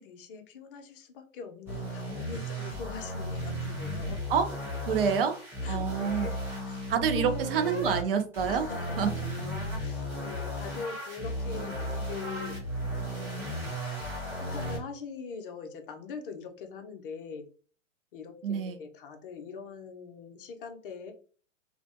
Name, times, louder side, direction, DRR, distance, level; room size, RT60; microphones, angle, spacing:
voice 1, 0.0-4.3 5.6-6.4 6.7-6.8 7.1-7.5 8.5-9.4 9.8-12.6 14.4-17.4 18.1-21.1, left 5 dB, 45° left, 4 dB, 0.6 m, -42 dB
sound 1, 1.7-8.0 8.3-14.8, equal, 5° right, 0.6 m, -35 dB
voice 2, 4.9-5.3 5.7-6.3 6.9-8.7 9.0-9.1 18.4-18.8, right 7 dB, 45° right, 8 dB, 0.5 m, -27 dB
2.5 x 2.1 x 2.5 m, 0.41 s
hypercardioid pair, 125°, 39 cm